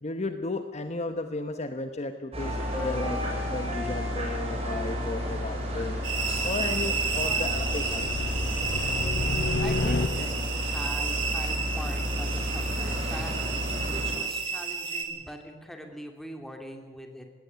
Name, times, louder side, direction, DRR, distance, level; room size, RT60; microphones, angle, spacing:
voice 1, 0.0-6.0 6.4-8.4, left 2 dB, 35° left, 8 dB, 1.0 m, -34 dB
sound 1, 2.3-14.1, equal, 35° right, 6.6 m, -32 dB
sound 2, 5.4-10.6, left 2 dB, 60° left, 0.7 m, -32 dB
sound 3, 6.0-15.0, right 5 dB, 85° right, 3.3 m, -31 dB
voice 2, 9.6-17.3, equal, ahead, 3 dB, 2.7 m, -42 dB
19.0 x 16.5 x 9.5 m, 1.4 s
head